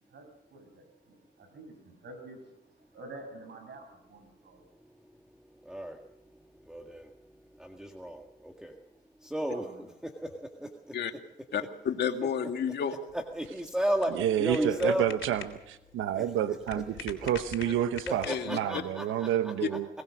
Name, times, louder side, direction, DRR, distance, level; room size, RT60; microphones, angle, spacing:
voice 1, 0.0-4.6 9.5-9.9 17.6-17.7, right 2 dB, 60° right, 6 dB, 6.7 m, -49 dB
voice 2, 5.6-6.0 6.7-7.1 7.6-8.7 9.2-9.7 10.0-10.7 13.3-15.1 16.1-16.6 18.1-19.5, right 1 dB, 5° right, 3 dB, 1.8 m, -33 dB
voice 3, 11.5-13.0 18.2-18.8 19.6-19.7, left 7 dB, 55° left, 5 dB, 2.2 m, -31 dB
sound 1, 13.1-18.7, left 9 dB, 75° left, 3.4 m, -46 dB
voice 4, 14.1-19.9, right 11 dB, 85° right, 11 dB, 1.0 m, -29 dB
22.0 x 19.0 x 6.4 m, 0.87 s
cardioid pair, 90°, 20 cm